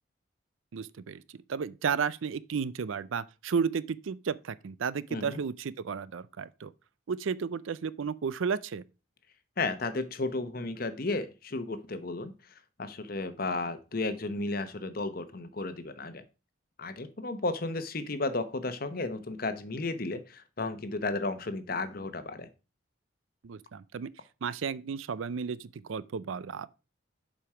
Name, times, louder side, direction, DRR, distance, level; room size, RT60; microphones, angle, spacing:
voice 1, 0.7-6.7 7.1-8.8 23.4-24.1 24.4-26.7, right 6 dB, 75° right, 0.4 m, -33 dB
voice 2, 9.6-12.3 12.8-16.2 16.8-22.5, left 2 dB, 45° left, 0.9 m, -33 dB
7.4 x 5.2 x 4.8 m
head